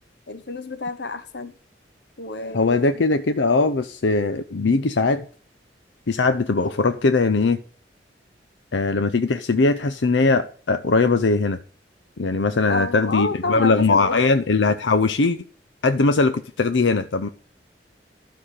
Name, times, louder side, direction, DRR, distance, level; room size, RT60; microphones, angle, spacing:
voice 1, 0.3-1.5 2.2-3.0 12.7-14.3, left 3 dB, 70° left, 1.1 m, -29 dB
voice 2, 2.5-5.2 6.1-7.6 8.7-11.6 12.2-15.4 15.8-17.3, left 3 dB, 85° left, 0.7 m, -20 dB
12.5 x 5.7 x 6.6 m
head